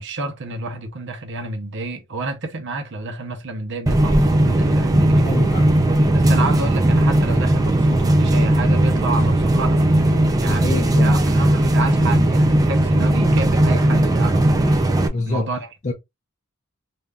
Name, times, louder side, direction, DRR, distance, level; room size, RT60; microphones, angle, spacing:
voice 1, 0.0-5.5 6.1-9.8 10.4-14.9 15.2-15.7, right 2 dB, 60° right, 0.8 m, -29 dB
sound 1, 3.9-15.1, right 1 dB, 15° right, 0.4 m, -17 dB
voice 2, 5.2-5.7 10.4-11.2 15.1-15.5 15.8-15.9, left 2 dB, 35° left, 0.5 m, -26 dB
3.3 x 2.7 x 2.3 m
head